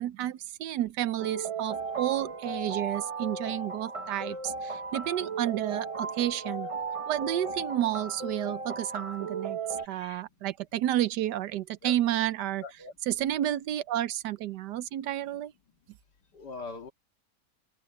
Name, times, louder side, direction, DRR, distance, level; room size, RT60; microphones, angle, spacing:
voice 1, 0.0-6.7 7.1-9.6 9.9-12.6 13.1-15.5, right 12 dB, 80° right, 1.3 m, -31 dB
sound 1, 1.2-9.9, right 4 dB, 40° right, 0.4 m, -36 dB
voice 2, 9.9-10.2 11.8-11.9 12.6-12.9 16.3-16.9, left 3 dB, 75° left, 2.6 m, -42 dB
omnidirectional pair, 1.8 m